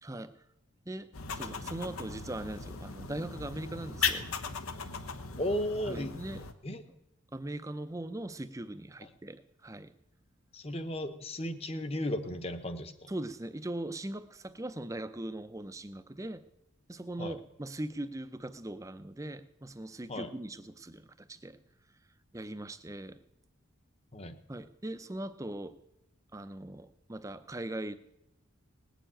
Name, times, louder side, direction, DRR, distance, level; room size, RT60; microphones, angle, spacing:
voice 1, 0.0-0.3 0.9-4.3 5.8-6.5 7.3-9.9 13.1-16.4 16.9-21.6 22.3-23.2 24.5-25.8 26.3-27.9, right 1 dB, 15° right, 12 dB, 0.5 m, -40 dB
sound 1, 1.1-6.5, left 6 dB, 85° left, 1.0 m, -37 dB
voice 2, 5.4-6.1 6.6-6.8 10.5-13.1 17.2-17.3 20.1-20.3 24.1-24.4, left 1 dB, 30° left, 9 dB, 0.9 m, -35 dB
18.5 x 7.0 x 8.9 m, 0.89 s
head